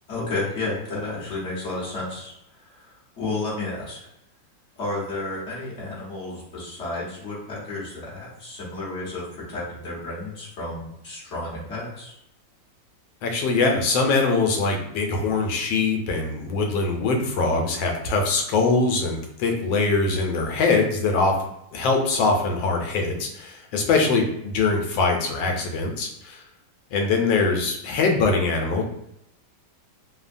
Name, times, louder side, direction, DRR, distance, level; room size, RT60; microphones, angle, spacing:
voice 1, 0.1-2.3 2.6-4.0 4.8-12.1, left 2 dB, 50° left, -7 dB, 1.0 m, -32 dB
voice 2, 13.2-21.3 21.7-26.4 26.9-28.8, left 3 dB, 85° left, 2 dB, 1.3 m, -22 dB
3.3 x 2.1 x 2.5 m, 0.80 s
omnidirectional pair, 2.0 m